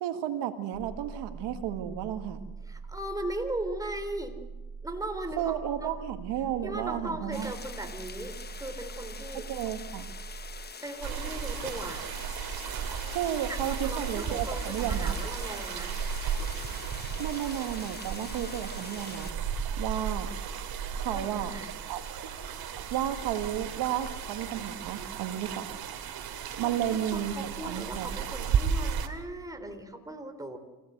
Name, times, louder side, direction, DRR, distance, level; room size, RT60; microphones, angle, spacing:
voice 1, 0.0-2.4 5.4-7.5 9.5-10.1 13.1-15.1 17.2-19.3 19.8-20.3 20.9-21.5 21.9-22.0 22.9-25.7 26.6-28.1, right 10 dB, 80° right, 8 dB, 1.9 m, -32 dB
sound 1, 0.7-10.7, right 4 dB, 25° right, 1.3 m, -43 dB
voice 2, 2.6-4.4 4.8-5.9 6.6-9.5 10.8-12.1 13.5-15.9 21.1-21.9 26.6-30.6, right 1 dB, 10° right, 6 dB, 3.6 m, -38 dB
Ambiance - Heavy Rain Loop, 7.3-19.3, left 5 dB, 25° left, 1.0 m, -45 dB
sound 2, 11.0-29.1, right 7 dB, 60° right, 2.6 m, -34 dB
26.5 x 17.0 x 8.0 m, 1.2 s
cardioid pair, 105°, 41 cm